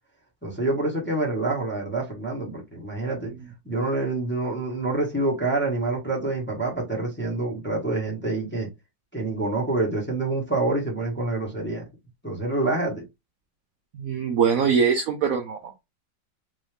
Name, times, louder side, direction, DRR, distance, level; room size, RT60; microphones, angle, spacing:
voice 1, 0.4-3.3 3.6-8.7 9.1-11.8 12.2-13.0, right 2 dB, 10° left, 0.9 m, -27 dB
voice 2, 13.9-15.8, right 6 dB, 80° right, 0.7 m, -23 dB
3.9 x 2.6 x 3.3 m
omnidirectional pair, 2.1 m